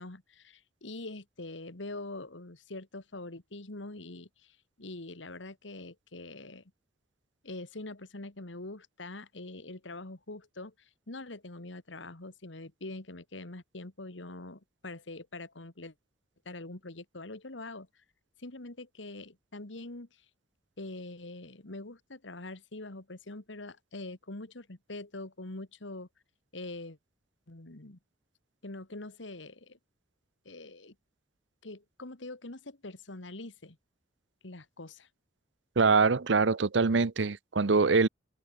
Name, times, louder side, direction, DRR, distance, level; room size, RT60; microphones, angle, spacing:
voice 1, 0.0-6.6 7.4-15.9 16.5-17.9 18.4-20.2 20.8-26.1 26.5-27.0 27.5-28.0 28.6-29.8 30.5-30.9 31.6-33.8 34.4-35.1, left 2 dB, 85° left, 2.1 m, -44 dB
voice 2, 35.8-38.1, right 4 dB, 75° right, 0.8 m, -24 dB
head